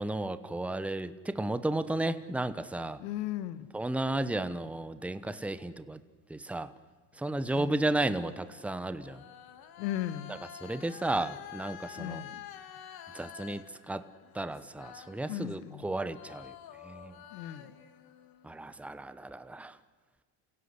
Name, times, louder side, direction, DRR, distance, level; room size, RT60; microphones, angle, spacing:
voice 1, 0.0-3.0 3.7-6.0 6.3-6.7 7.2-9.2 10.6-12.2 13.1-14.0 14.3-16.5 16.8-17.1 18.4-19.7, right 2 dB, 5° right, 13 dB, 1.0 m, -33 dB
voice 2, 3.0-3.7 7.5-7.9 9.8-10.3 11.9-12.4 15.3-16.2 17.3-17.7, left 13 dB, 85° left, 14 dB, 1.6 m, -37 dB
sound 1, 7.1-15.8 16.1-18.7, left 10 dB, 50° left, 2.0 m, -49 dB
28.5 x 16.5 x 8.2 m, 1.5 s
supercardioid pair, 100°, 47 cm